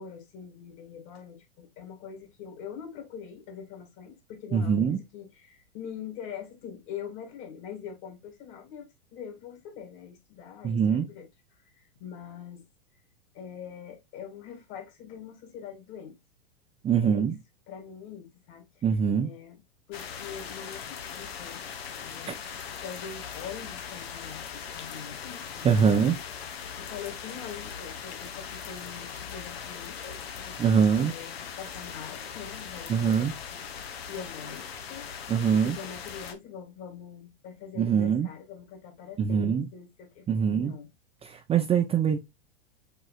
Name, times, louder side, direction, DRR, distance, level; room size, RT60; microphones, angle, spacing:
voice 1, 0.0-12.7 13.3-16.2 17.0-17.3 17.7-18.8 19.2-19.6 19.9-21.6 22.0-22.3 22.8-26.1 26.5-40.9, left 8 dB, 40° left, 2.1 m, -44 dB
voice 2, 4.5-5.0 10.6-11.1 16.8-17.4 18.8-19.3 22.3-22.4 25.6-26.2 30.6-31.1 32.9-33.3 35.3-35.8 37.8-38.3 39.2-39.7 40.3-40.8 41.2-42.2, right 7 dB, 20° right, 0.6 m, -23 dB
sound 1, 19.9-36.3, left 7 dB, 75° left, 1.0 m, -40 dB
6.6 x 3.0 x 2.4 m
hypercardioid pair, 105°, 31 cm